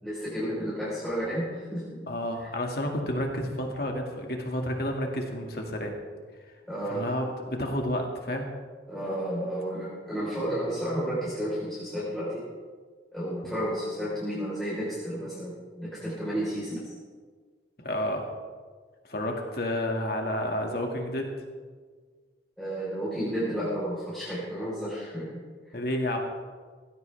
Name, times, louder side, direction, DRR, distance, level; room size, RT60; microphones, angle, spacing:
voice 1, 0.0-2.0 2.4-2.5 6.7-7.0 8.9-12.4 13.1-16.9 22.6-25.7, equal, ahead, -10 dB, 4.3 m, -32 dB
voice 2, 2.1-5.9 6.9-8.5 17.8-18.3 19.1-21.3 25.7-26.2, left 1 dB, 55° left, 2 dB, 2.2 m, -30 dB
19.0 x 15.5 x 3.5 m, 1.6 s
head